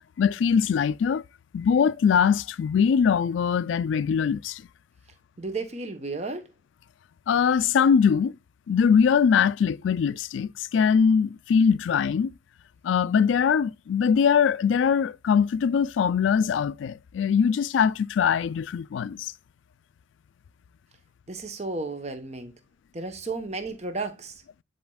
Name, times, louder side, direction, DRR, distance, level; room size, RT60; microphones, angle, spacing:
voice 1, 0.2-1.2 1.5-4.6 7.3-8.3 8.7-12.3 12.8-19.3, left 7 dB, 85° left, 0.3 m, -22 dB
voice 2, 5.4-6.5 21.3-22.5 22.9-24.4, right 3 dB, 35° right, 0.9 m, -33 dB
10.5 x 4.4 x 2.3 m
head